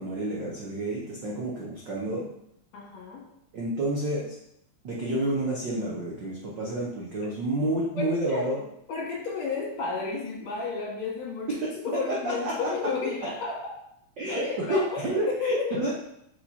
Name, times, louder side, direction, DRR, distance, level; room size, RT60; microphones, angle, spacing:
voice 1, 0.0-2.3 3.5-4.3 4.8-8.6 11.6-11.7 12.2-12.7 14.2-15.9, right 1 dB, 75° right, -3 dB, 1.0 m, -29 dB
voice 2, 2.7-3.2 7.9-8.4 8.9-11.6 11.8-13.6 14.3-15.9, left 4 dB, 65° left, -2 dB, 2.7 m, -32 dB
5.7 x 4.9 x 4.2 m, 0.79 s
omnidirectional pair, 3.4 m